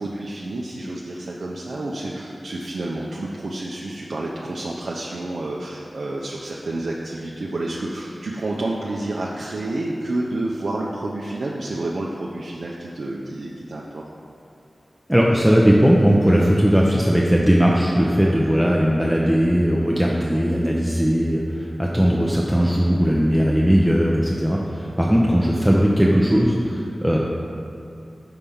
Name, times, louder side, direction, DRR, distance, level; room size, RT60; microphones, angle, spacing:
voice 1, 0.0-14.0 18.0-18.4, right 2 dB, 75° right, -4 dB, 0.5 m, -29 dB
voice 2, 15.1-27.2, equal, 5° right, -3 dB, 0.6 m, -18 dB
5.6 x 3.5 x 5.4 m, 2.6 s
cardioid pair, 45°, 0 cm